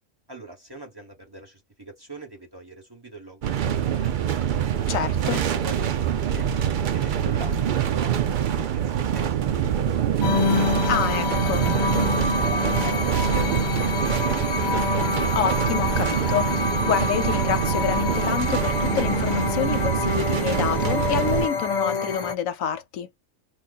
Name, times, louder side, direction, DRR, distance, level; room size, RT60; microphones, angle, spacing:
voice 1, 0.3-4.7 5.2-9.4 9.8-9.9 11.5-15.0, right 2 dB, 20° right, 1.6 m, -42 dB
sound 1, 3.4-21.5, right 9 dB, 75° right, 0.4 m, -25 dB
voice 2, 4.9-5.4 10.9-11.6 15.3-23.1, left 9 dB, 90° left, 1.1 m, -27 dB
sound 2, 10.2-22.4, left 4 dB, 45° left, 0.6 m, -27 dB
2.9 x 2.6 x 3.8 m
omnidirectional pair, 1.4 m